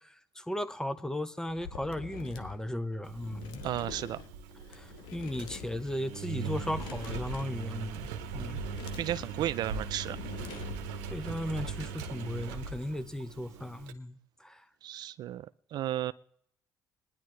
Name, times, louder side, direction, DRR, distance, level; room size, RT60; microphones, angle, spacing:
voice 1, 0.4-3.6 4.7-8.1 8.3-8.6 11.1-14.6, left 1 dB, 10° left, 0.9 m, -36 dB
sound 1, 1.5-11.1, left 10 dB, 80° left, 0.8 m, -47 dB
Engine, 3.0-13.9, right 5 dB, 85° right, 0.8 m, -40 dB
voice 2, 3.6-4.2 9.0-10.2 14.8-16.1, right 12 dB, 65° right, 0.4 m, -34 dB
21.5 x 10.5 x 3.2 m
hypercardioid pair, 55°, 8 cm